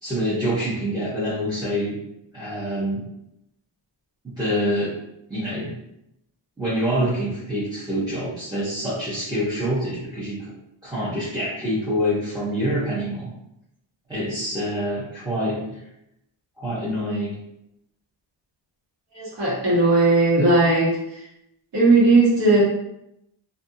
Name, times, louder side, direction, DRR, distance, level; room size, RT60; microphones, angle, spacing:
voice 1, 0.0-2.0 2.3-3.1 4.2-5.0 5.3-5.8 6.6-10.5 10.8-13.3 14.1-15.8 16.6-17.4, equal, 10° right, -10 dB, 0.8 m, -26 dB
voice 2, 19.1-20.9 21.7-22.6, right 2 dB, 60° right, -5 dB, 1.2 m, -17 dB
2.5 x 2.4 x 2.7 m, 0.82 s
cardioid pair, 85°, 48 cm